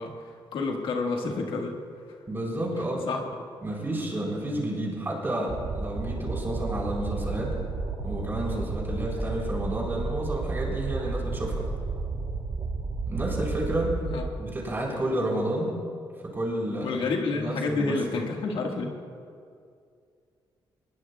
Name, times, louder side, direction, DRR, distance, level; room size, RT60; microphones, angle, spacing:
voice 1, 0.0-1.8 3.1-3.2 14.1-14.2 16.8-18.9, left 3 dB, 85° left, 1 dB, 1.8 m, -29 dB
voice 2, 2.3-3.1 3.6-7.5 8.0-11.7 13.1-14.0 14.4-15.8 16.2-17.0 17.3-18.0, right 1 dB, 25° right, -3 dB, 4.5 m, -30 dB
sound 1, 5.5-14.3, right 4 dB, 65° right, 1.9 m, -32 dB
23.0 x 20.5 x 2.4 m, 2.3 s
cardioid pair, 125°, 9 cm